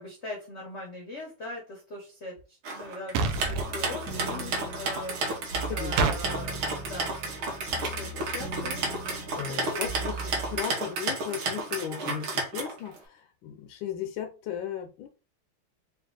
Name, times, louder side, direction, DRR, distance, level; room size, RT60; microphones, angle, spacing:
voice 1, 0.0-8.8 9.3-9.8, left 2 dB, 60° left, -2 dB, 0.7 m, -41 dB
sound 1, 2.6-13.0, right 3 dB, 70° right, 1.7 m, -32 dB
sound 2, 3.2-3.7 6.0-6.2, right 4 dB, 85° right, 1.5 m, -25 dB
sound 3, 3.4-10.6, right 2 dB, 55° right, 1.4 m, -39 dB
voice 2, 9.3-15.1, left 9 dB, 75° left, 4 dB, 1.2 m, -36 dB
4.1 x 2.3 x 3.7 m, 0.34 s
omnidirectional pair, 2.4 m